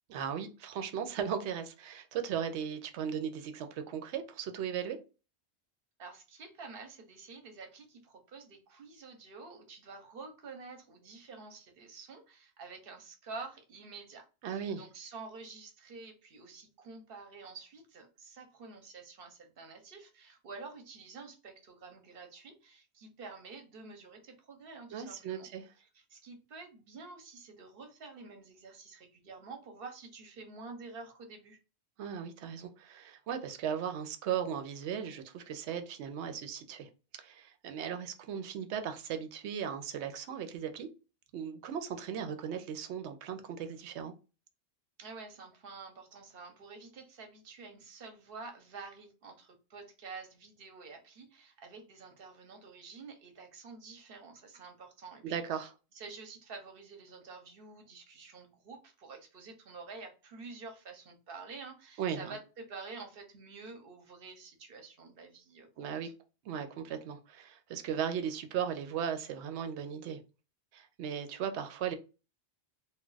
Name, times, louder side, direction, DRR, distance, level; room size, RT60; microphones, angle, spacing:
voice 1, 0.1-5.0 14.4-14.8 24.9-25.7 32.0-36.9 37.2-40.9 41.3-44.1 55.2-55.7 62.0-62.4 65.8-66.1 66.4-70.2 70.7-71.9, right 8 dB, 85° right, 0.9 m, -37 dB
voice 2, 6.0-25.5 25.9-31.6 45.0-55.7 55.9-66.1, right 4 dB, 60° right, 0.9 m, -49 dB
2.3 x 2.2 x 3.8 m
omnidirectional pair, 1.1 m